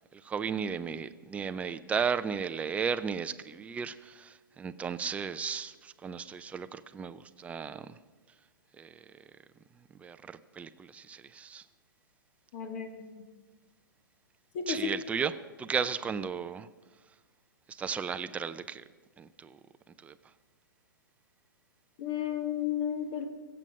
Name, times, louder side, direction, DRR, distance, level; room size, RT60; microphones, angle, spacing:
voice 1, 0.1-8.0 8.8-9.0 10.0-11.6 14.7-15.3 15.6-16.7 17.7-18.8 19.2-19.6 20.0-20.1, right 6 dB, 10° right, 12 dB, 0.5 m, -35 dB
voice 2, 12.5-13.1 14.5-14.9 22.0-23.2, left 9 dB, 45° left, 6 dB, 2.0 m, -33 dB
23.5 x 7.9 x 5.4 m, 1.3 s
figure-of-eight pair, 120°, 12 cm